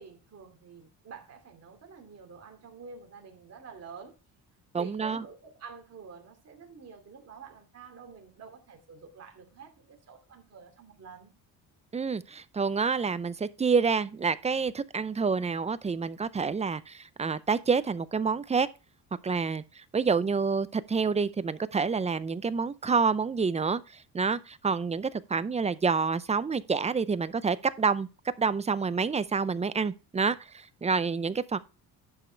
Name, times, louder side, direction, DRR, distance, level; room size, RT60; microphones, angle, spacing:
voice 1, 0.0-4.2 4.8-11.3, right 5 dB, 40° right, 2.7 m, -48 dB
voice 2, 4.7-5.2 11.9-18.7 19.2-28.1 28.4-31.6, right 5 dB, 15° right, 0.4 m, -28 dB
11.0 x 5.2 x 4.5 m
cardioid pair, 125°, 39 cm